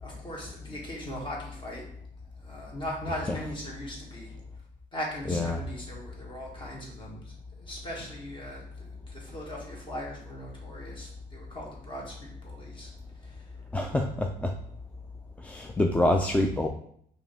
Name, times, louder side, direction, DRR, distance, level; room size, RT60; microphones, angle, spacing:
voice 1, 0.0-1.8 2.4-4.4 4.9-7.3 7.6-12.9 13.2-13.5, equal, 30° left, -2 dB, 1.5 m, -39 dB
voice 2, 5.3-5.6 13.7-14.5 15.4-16.7, left 1 dB, 10° left, 3 dB, 0.3 m, -26 dB
4.8 x 2.8 x 3.4 m, 0.67 s
cardioid pair, 110°, 17 cm